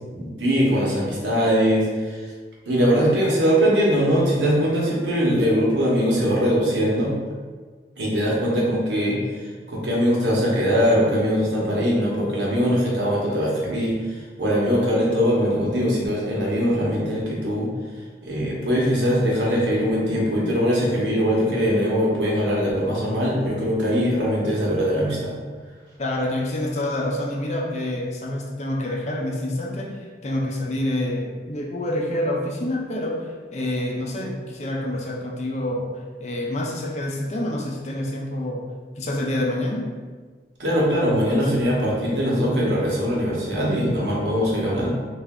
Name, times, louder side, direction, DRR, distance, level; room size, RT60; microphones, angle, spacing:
voice 1, 0.1-2.2 2.6-7.1 8.0-9.2 9.7-13.9 14.4-17.7 18.2-25.4 40.6-44.9, equal, 85° right, -4 dB, 1.0 m, -21 dB
voice 2, 26.0-30.0 30.2-35.9 36.2-38.7 39.0-39.9, left 1 dB, 40° left, -1 dB, 0.5 m, -27 dB
3.3 x 2.5 x 3.6 m, 1.5 s
head